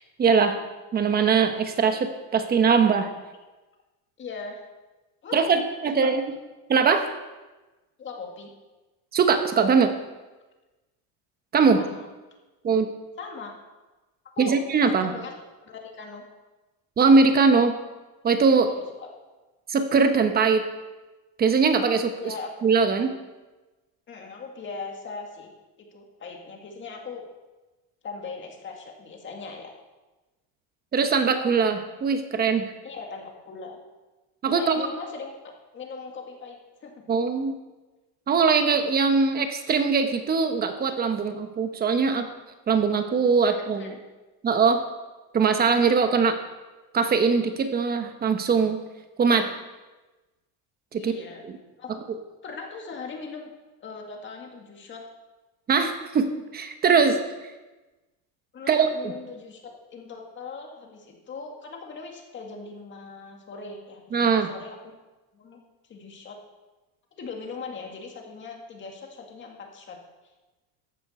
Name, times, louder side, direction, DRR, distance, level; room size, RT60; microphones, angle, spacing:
voice 1, 0.2-0.6 0.9-3.1 5.3-6.2 6.7-7.1 9.1-9.9 11.5-11.8 12.6-12.9 14.4-15.1 17.0-17.7 18.2-18.7 19.7-20.7 21.4-22.3 22.6-23.1 30.9-32.7 34.4-34.8 37.1-37.6 38.3-42.3 42.7-43.9 44.4-44.8 45.3-46.3 46.9-48.8 49.2-49.5 50.9-51.1 55.7-57.2 58.7-59.1 64.1-64.5, right 5 dB, 20° right, 7 dB, 1.0 m, -21 dB
voice 2, 4.2-4.6 5.2-5.5 6.0-6.1 8.0-8.5 11.8-12.1 13.2-13.5 14.4-14.6 15.0-15.3 15.6-16.2 18.7-19.1 22.2-22.5 24.1-25.5 25.8-27.2 28.0-29.7 32.8-33.8 34.5-35.4 35.7-37.0 43.4-43.9 50.9-51.4 51.8-51.9 52.4-53.5 53.8-55.1 58.5-64.9 65.3-65.6 65.9-66.4 67.2-70.0, left 4 dB, 25° left, 2 dB, 2.0 m, -39 dB
15.0 x 10.5 x 4.4 m, 1.1 s
cardioid pair, 165°, 43 cm